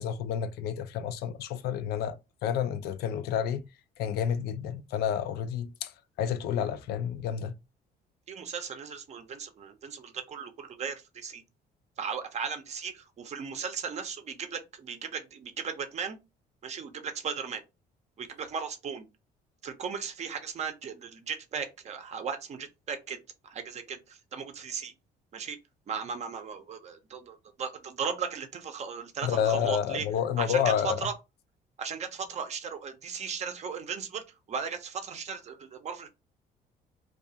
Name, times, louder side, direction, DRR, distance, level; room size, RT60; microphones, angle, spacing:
voice 1, 0.0-2.2 2.4-3.6 4.0-5.9 6.2-7.5 29.2-31.0, left 9 dB, 70° left, 0.4 m, -29 dB
voice 2, 8.3-11.4 12.0-16.2 16.6-17.6 18.2-19.1 19.6-24.9 25.3-25.6 25.9-30.1 30.4-31.1 31.8-36.1, right 6 dB, 40° right, 0.6 m, -36 dB
2.3 x 2.3 x 2.7 m
cardioid pair, 110°, 17 cm